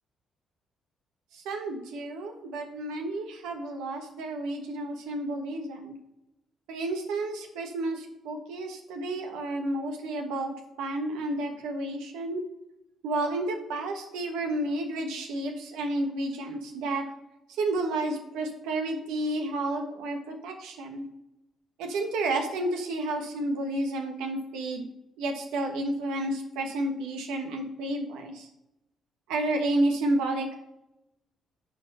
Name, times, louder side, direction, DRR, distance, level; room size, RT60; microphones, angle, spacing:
voice 1, 1.3-5.9 6.7-12.4 13.0-17.0 17.5-21.1 21.8-24.9 25.2-28.5 29.3-30.6, right 2 dB, 85° right, 3 dB, 1.2 m, -31 dB
9.5 x 4.4 x 5.4 m, 0.88 s
supercardioid pair, 65°, 0 cm